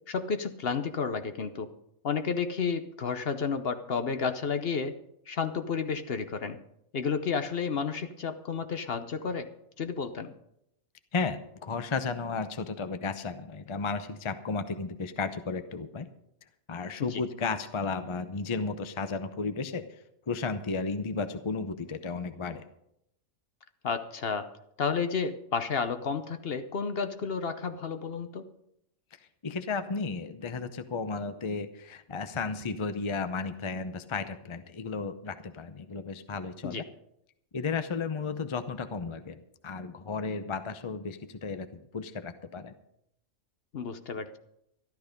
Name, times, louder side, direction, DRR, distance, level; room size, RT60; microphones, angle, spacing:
voice 1, 0.1-1.7 2.0-4.9 5.3-6.6 6.9-9.5 9.8-10.3 17.0-17.2 23.8-24.5 24.8-28.5 36.6-36.8 43.7-44.4, left 5 dB, 50° left, 10 dB, 0.9 m, -31 dB
voice 2, 11.1-16.1 16.7-19.8 20.3-22.6 29.4-36.8 37.5-42.7, left 4 dB, 35° left, 10 dB, 0.5 m, -34 dB
13.0 x 12.0 x 5.2 m, 0.78 s
omnidirectional pair, 1.5 m